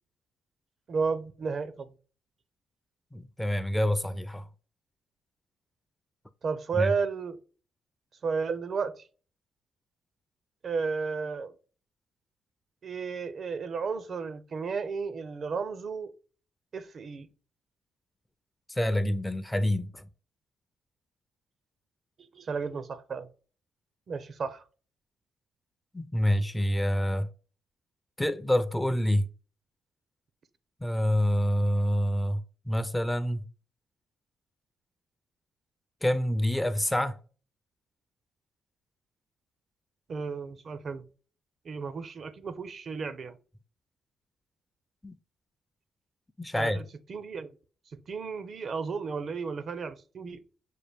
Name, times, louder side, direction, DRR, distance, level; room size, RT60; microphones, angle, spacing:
voice 1, 0.9-1.9 6.4-7.4 8.2-8.9 10.6-11.5 12.8-16.1 16.7-17.3 22.3-23.3 24.1-24.6 40.1-41.0 41.6-43.4 46.5-47.5 47.9-50.4, right 5 dB, 50° right, 0.5 m, -33 dB
voice 2, 3.1-4.5 6.7-6.9 18.7-20.0 25.9-27.3 28.2-29.3 30.8-33.4 36.0-37.2 45.0-45.2 46.4-46.8, equal, 10° left, 0.4 m, -27 dB
6.5 x 2.2 x 3.4 m
cardioid pair, 90°, 0 cm